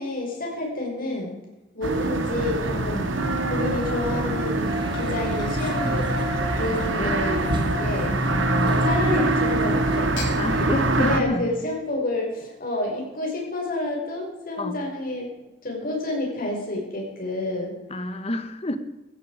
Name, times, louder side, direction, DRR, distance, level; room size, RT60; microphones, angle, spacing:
voice 1, 0.0-1.4 1.7-3.2 3.5-6.1 6.5-8.1 8.6-10.1 10.5-10.7 11.0-15.4 15.6-17.7, left 1 dB, 50° left, -1 dB, 5.4 m, -29 dB
sound 1, 1.8-11.2, right 2 dB, 85° right, 1.8 m, -24 dB
Gurgling / Chink clink / Liquid, 3.1-9.3 10.0-10.4, left 3 dB, 75° left, 6.9 m, -42 dB
sound 2, 4.6-10.0, left 1 dB, 25° right, 2.1 m, -35 dB
voice 2, 6.7-7.1 8.3-9.3 10.4-11.5 14.6-14.8 17.9-18.8, left 1 dB, 35° left, 10 dB, 1.3 m, -29 dB
16.0 x 14.0 x 4.9 m, 1.0 s
head